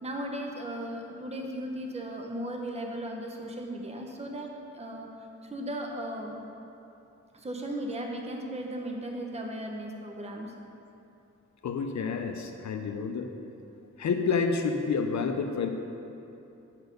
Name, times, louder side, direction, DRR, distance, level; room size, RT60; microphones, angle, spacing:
voice 1, 0.0-5.1 5.4-6.4 7.3-10.5, right 1 dB, 20° right, 1 dB, 0.9 m, -36 dB
voice 2, 11.6-13.3 14.0-15.7, left 5 dB, 65° left, 5 dB, 0.6 m, -29 dB
7.8 x 4.3 x 6.6 m, 2.9 s
cardioid pair, 75°, 31 cm